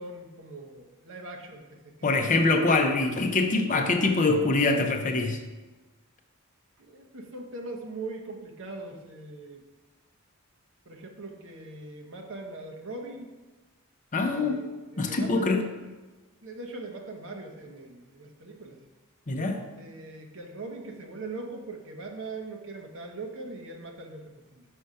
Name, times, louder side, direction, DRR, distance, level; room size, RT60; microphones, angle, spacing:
voice 1, 0.0-2.7 6.8-9.6 10.9-13.4 14.2-15.6 16.4-18.8 19.8-24.6, right 2 dB, 60° right, 2 dB, 0.9 m, -41 dB
voice 2, 2.0-5.4 14.1-14.6 15.0-15.6 19.3-19.6, left 3 dB, 35° left, 5 dB, 0.6 m, -24 dB
5.5 x 4.9 x 5.5 m, 1.2 s
head